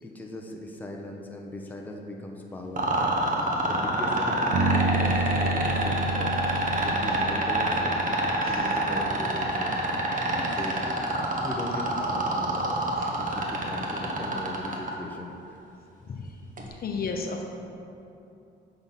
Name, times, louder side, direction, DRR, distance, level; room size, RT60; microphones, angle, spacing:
voice 1, 0.0-2.9 3.6-6.3 6.8-8.0 8.5-9.7 10.5-10.8 11.4-12.9 13.1-15.3 16.6-16.7, left 1 dB, 10° left, 0 dB, 0.7 m, -38 dB
sound 1, 2.8-14.9 16.6-16.7, right 2 dB, 40° right, 1.1 m, -26 dB
Bass guitar, 4.5-8.6, right 2 dB, 70° right, 0.6 m, -29 dB
voice 2, 16.8-17.4, left 4 dB, 50° left, 2 dB, 0.8 m, -32 dB
7.1 x 3.9 x 5.7 m, 2.8 s
cardioid pair, 90°, 20 cm